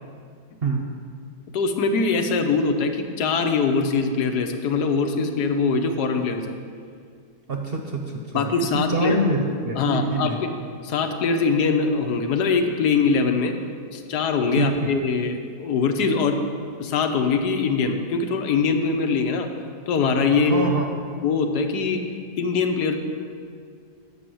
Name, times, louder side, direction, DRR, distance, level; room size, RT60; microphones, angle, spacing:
voice 1, 1.5-6.5 8.3-9.2 9.7-10.5 10.8-13.5 13.9-16.4 16.8-19.5 19.9-20.7 21.1-22.0 22.4-23.0, left 4 dB, 90° left, 6 dB, 1.4 m, -22 dB
voice 2, 7.5-10.4 14.5-14.9 20.3-20.9, right 2 dB, 50° right, 2 dB, 0.7 m, -26 dB
8.7 x 5.6 x 7.6 m, 2.2 s
omnidirectional pair, 1.7 m